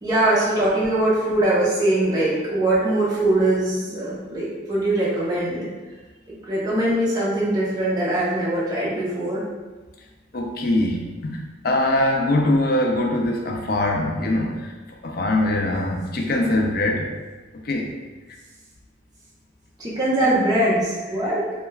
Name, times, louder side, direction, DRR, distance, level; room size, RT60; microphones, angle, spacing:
voice 1, 0.0-5.7 6.3-9.4 19.8-21.4, right 1 dB, 20° right, -8 dB, 0.5 m, -22 dB
voice 2, 10.3-11.4 11.6-14.7 15.0-17.1 17.6-17.9, left 1 dB, 55° left, 1 dB, 0.4 m, -22 dB
2.2 x 2.1 x 3.1 m, 1.2 s
head